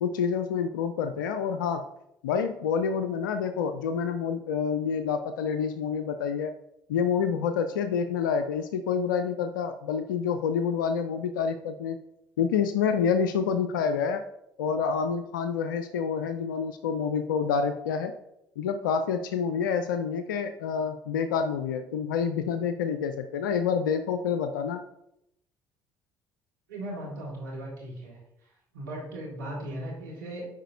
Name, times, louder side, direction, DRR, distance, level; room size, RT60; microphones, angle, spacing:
voice 1, 0.0-1.9 2.2-6.6 6.9-12.0 12.4-14.2 14.6-18.1 18.6-24.8, left 6 dB, 80° left, 9 dB, 0.4 m, -28 dB
voice 2, 26.7-28.2 28.7-30.5, right 1 dB, 85° right, -4 dB, 1.8 m, -37 dB
8.8 x 4.8 x 2.7 m, 0.81 s
figure-of-eight pair, 50°, 10 cm